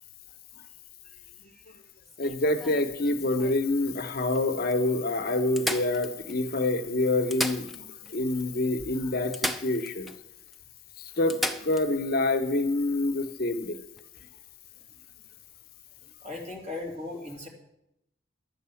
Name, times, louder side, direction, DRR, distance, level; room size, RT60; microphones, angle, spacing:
sound 1, 2.0-3.7 4.3-4.4 4.7-4.8 5.6-6.6 7.1-8.2 8.4-8.5 9.3-10.2 10.5-10.6 11.3-11.9 13.8-14.0, left 1 dB, ahead, 0.5 m, -34 dB
voice 1, 2.2-10.1 11.0-13.8, left 2 dB, 50° left, 8 dB, 0.9 m, -27 dB
voice 2, 16.2-17.5, left 2 dB, 35° right, -1 dB, 2.8 m, -38 dB
12.0 x 8.6 x 7.0 m, 0.83 s
head